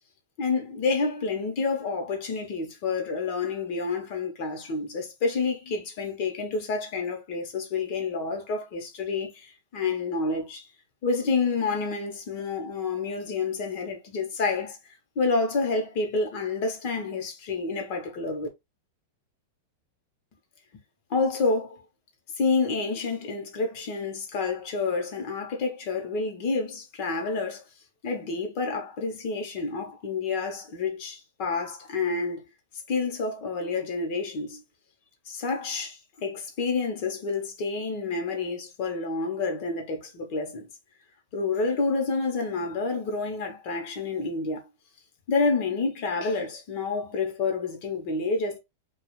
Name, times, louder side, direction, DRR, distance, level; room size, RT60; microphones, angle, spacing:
voice 1, 0.4-10.7 11.0-14.8 15.2-18.5 21.1-21.8 22.4-27.6 28.0-32.4 32.9-34.6 35.3-40.7 41.3-44.6 45.3-48.6, left 4 dB, 45° left, 0.9 m, -29 dB
2.4 x 2.3 x 3.0 m
supercardioid pair, 155°, 0 cm